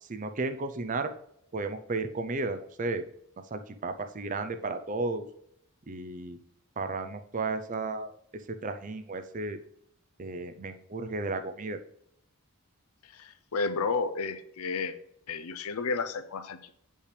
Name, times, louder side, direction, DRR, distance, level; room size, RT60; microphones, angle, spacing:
voice 1, 0.0-1.1 1.5-3.0 3.5-5.2 5.9-6.4 6.8-8.1 8.5-9.6 10.2-11.8, right 3 dB, 35° right, 9 dB, 0.5 m, -33 dB
voice 2, 13.0-14.9 15.3-16.7, left 4 dB, 80° left, 11 dB, 0.6 m, -32 dB
8.4 x 5.4 x 3.3 m, 0.74 s
head